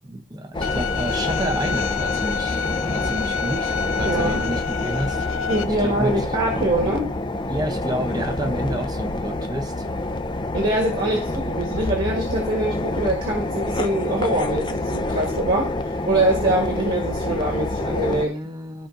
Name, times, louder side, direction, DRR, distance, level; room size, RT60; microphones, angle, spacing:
voice 1, 0.0-5.3 5.8-6.3 7.5-9.9 11.1-11.2 18.1-18.9, right 1 dB, 20° right, 0.6 m, -30 dB
sound 1, 0.5-18.3, left 2 dB, 20° left, 0.5 m, -27 dB
Bowed string instrument, 0.6-5.6, left 7 dB, 90° left, 0.6 m, -28 dB
voice 2, 4.0-4.4 5.5-7.1 10.5-18.3, right 1 dB, 45° right, 1.6 m, -23 dB
14.0 x 5.0 x 2.5 m
head